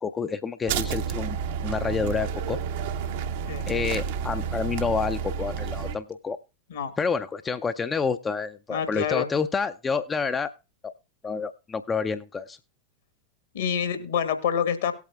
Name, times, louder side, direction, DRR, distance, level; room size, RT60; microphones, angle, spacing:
voice 1, 0.0-1.4 1.6-2.6 3.7-6.4 7.0-10.5 10.8-10.9 11.2-12.6, left 5 dB, 20° left, 9 dB, 0.4 m, -28 dB
sound 1, 0.7-6.0, right 7 dB, 50° right, 0.7 m, -30 dB
voice 2, 8.7-9.3 13.5-14.9, left 8 dB, 60° left, 9 dB, 1.4 m, -27 dB
18.5 x 8.3 x 2.3 m, 0.30 s
figure-of-eight pair, 90°, 0 cm